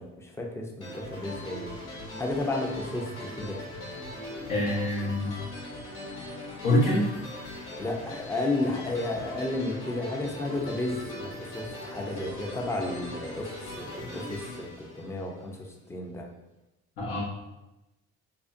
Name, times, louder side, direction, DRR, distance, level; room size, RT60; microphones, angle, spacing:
voice 1, 0.0-1.7 2.2-3.6 7.8-16.3, left 2 dB, 10° left, 1 dB, 0.4 m, -33 dB
sound 1, 0.8-15.6, left 1 dB, 40° left, 1.1 m, -40 dB
voice 2, 4.5-5.3 6.6-7.1 17.0-17.2, left 1 dB, 85° left, -5 dB, 0.8 m, -25 dB
2.4 x 2.1 x 2.4 m, 0.96 s
supercardioid pair, 65°, 33 cm